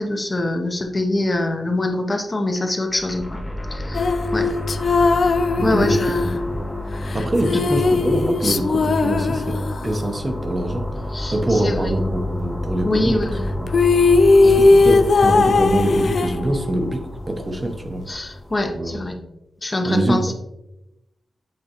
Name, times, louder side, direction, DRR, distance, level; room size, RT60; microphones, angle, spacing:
voice 1, 0.0-3.2 3.7-4.5 5.6-6.4 11.1-12.0 12.8-13.5 14.4-14.5 18.1-19.1 19.6-20.3, left 1 dB, 25° left, 4 dB, 0.7 m, -24 dB
sound 1, 2.9-19.1, left 1 dB, 10° left, 1.1 m, -29 dB
sound 2, 3.9-10.1 13.4-13.5 13.7-16.9, left 3 dB, 55° left, 0.3 m, -18 dB
voice 2, 5.5-6.0 6.4-6.6 7.1-9.6 9.8-10.9 11.3-13.7 14.4-18.0 18.6-19.0 19.8-20.3, right 1 dB, 25° right, 5 dB, 0.7 m, -24 dB
7.7 x 4.3 x 2.9 m, 0.89 s
wide cardioid pair, 155°, 0 cm